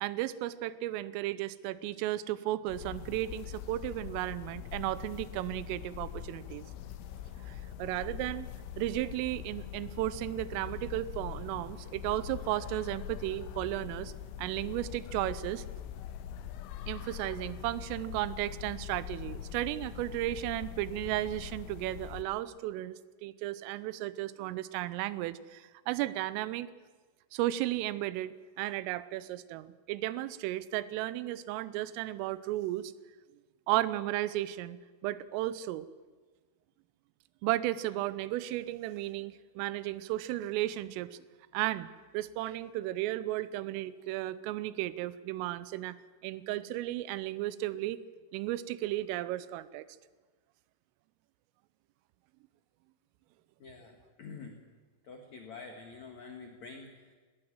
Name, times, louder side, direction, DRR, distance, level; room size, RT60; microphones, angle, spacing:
voice 1, 0.0-6.6 7.5-8.5 8.8-14.1 14.4-15.6 16.9-26.7 27.3-32.9 33.7-35.9 37.4-41.2 41.5-41.9 42.1-46.0 46.2-48.0 48.3-49.9, right 15 dB, 80° right, 16 dB, 3.3 m, -34 dB
sound 1, 2.7-22.2, left 11 dB, 90° left, 3.8 m, -43 dB
voice 2, 53.6-54.6 55.0-57.1, left 4 dB, 70° left, 3 dB, 1.7 m, -47 dB
20.5 x 18.0 x 7.5 m, 1.4 s
omnidirectional pair, 6.0 m